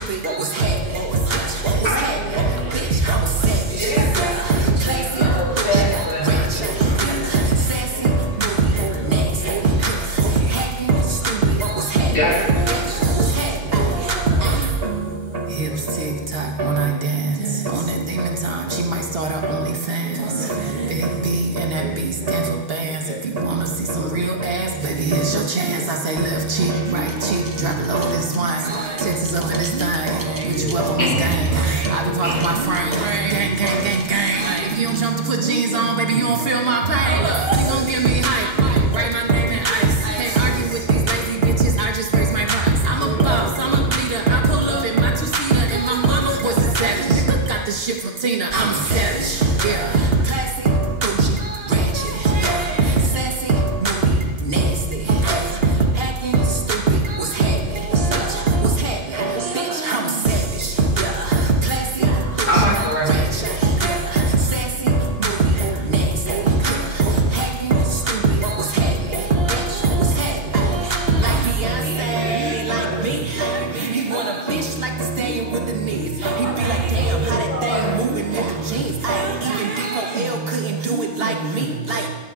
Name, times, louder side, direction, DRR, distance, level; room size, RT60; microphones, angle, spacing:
voice 1, 1.8-2.9 3.7-7.3 12.1-13.4 13.8-14.1 31.0-31.5 32.2-32.4 62.5-63.4 71.8-73.1 76.4-78.0 79.3-79.4, left 1 dB, 65° left, -6 dB, 2.8 m, -26 dB
voice 2, 6.7-7.4 7.9-8.4 8.7-9.5 14.1-14.6 15.5-17.7 18.1-22.4 22.8-24.7 25.0-27.2 28.9-29.5 29.8-34.0 34.4-38.1 38.5-40.4 40.7-41.7 42.5-44.8, equal, 30° left, -1 dB, 1.5 m, -37 dB
voice 3, 25.1-25.4 26.1-26.3 26.6-26.7 26.9-27.0 27.6-28.1 28.4-28.5 29.1-30.0 30.7-31.3 31.9-33.8 34.1-38.4 39.0-39.8 40.4-40.5 41.1-41.2 41.8-41.9 42.3-42.4 43.3-43.8 44.3-44.4 44.7-45.1 46.1-46.3 46.7-47.2 48.2-48.7 48.9-49.1 49.6-49.8 52.4-52.5 53.8-53.9 55.3-55.4 57.4-57.5 59.9-60.0 61.0-61.1 66.6-66.7 71.2-71.3 72.1-72.3 72.7-72.8 74.1-74.2 75.2-75.3 77.3-77.7 79.0-79.2 80.2-80.3 81.2-81.3 81.9-82.0, right 3 dB, 60° right, 2 dB, 1.1 m, -20 dB
sound 1, 26.9-35.1, right 2 dB, 20° right, 0.6 m, -40 dB
11.0 x 7.3 x 3.6 m, 1.3 s
omnidirectional pair, 1.2 m